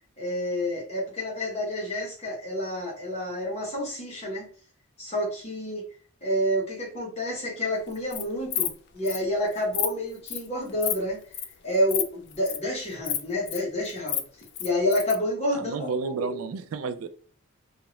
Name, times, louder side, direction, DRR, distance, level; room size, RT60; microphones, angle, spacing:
voice 1, 0.2-4.5 5.0-5.8 6.2-11.2 11.6-14.2 14.6-16.4, left 1 dB, 30° left, -2 dB, 1.0 m, -29 dB
Insect, 7.9-8.2 8.5-8.7 9.1-9.2 9.5-9.9 10.3-10.5 10.8-11.0 11.3-11.5 11.9-12.0 12.3-12.6 13.0-13.6 13.9-15.2, left 10 dB, 50° left, 0.3 m, -29 dB
voice 2, 15.5-17.1, right 4 dB, 75° right, 11 dB, 0.3 m, -32 dB
2.8 x 2.4 x 3.0 m, 0.42 s
head